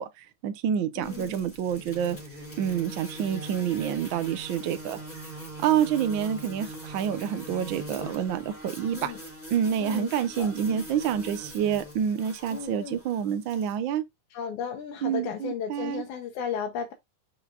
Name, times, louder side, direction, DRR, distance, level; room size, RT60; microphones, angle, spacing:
voice 1, 0.0-2.2 2.6-5.0 5.6-9.1 9.5-14.0 15.0-16.0, right 9 dB, 85° right, 1.1 m, -28 dB
voice 2, 1.0-1.4 8.9-9.2 9.8-10.8 12.5-13.0 14.3-16.9, left 7 dB, 80° left, 2.4 m, -35 dB
sound 1, 1.0-13.7, right 1 dB, 5° left, 2.4 m, -42 dB
6.4 x 6.0 x 2.4 m
omnidirectional pair, 3.4 m